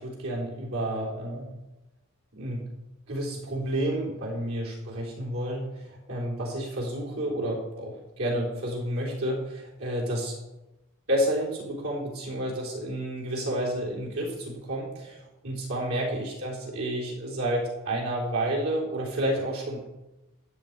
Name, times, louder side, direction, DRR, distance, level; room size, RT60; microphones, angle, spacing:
voice 1, 0.0-1.5 2.3-2.6 3.1-5.6 5.9-10.3 11.1-19.8, right 1 dB, 85° right, -3 dB, 4.0 m, -30 dB
12.5 x 5.1 x 8.9 m, 1.0 s
head